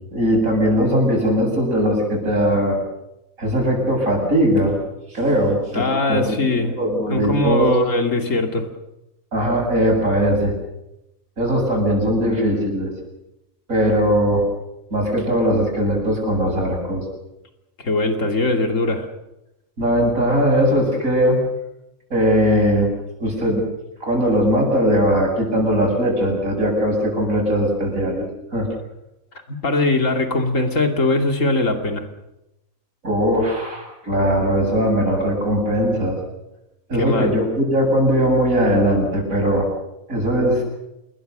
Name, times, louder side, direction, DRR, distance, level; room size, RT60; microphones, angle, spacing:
voice 1, 0.1-2.8 3.4-4.8 5.1-6.3 6.7-7.8 9.3-10.5 11.4-12.9 13.7-14.4 14.9-17.0 19.8-21.4 22.1-22.9 23.2-23.6 24.0-28.7 33.0-36.2 36.9-39.7 40.1-40.6, equal, 80° right, 1 dB, 8.7 m, -19 dB
voice 2, 5.7-6.8 7.1-8.7 17.8-19.1 29.5-32.1 37.0-37.4, left 2 dB, 65° left, 4 dB, 3.0 m, -21 dB
28.0 x 21.5 x 6.8 m, 0.91 s
omnidirectional pair, 1.4 m